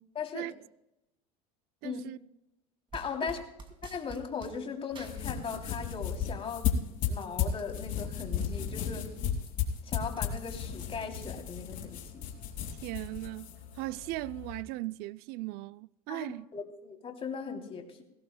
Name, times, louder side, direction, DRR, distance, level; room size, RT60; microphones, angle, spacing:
voice 1, 0.1-0.5 1.8-2.0 2.9-3.4 3.9-6.7 7.1-9.1 9.8-12.2 16.1-16.2 16.5-18.0, left 6 dB, 30° left, 3.0 m, -38 dB
voice 2, 1.8-2.2 12.8-13.5 13.7-16.5, right 19 dB, 60° right, 0.4 m, -38 dB
sound 1, 2.9-4.6 4.9-6.1 6.4-8.5 8.9-9.0 9.2-11.6, right 3 dB, 30° right, 2.6 m, -50 dB
sound 2, 4.9-14.6, left 8 dB, 50° left, 4.1 m, -35 dB
21.0 x 17.0 x 2.2 m
supercardioid pair, 105°, 18 cm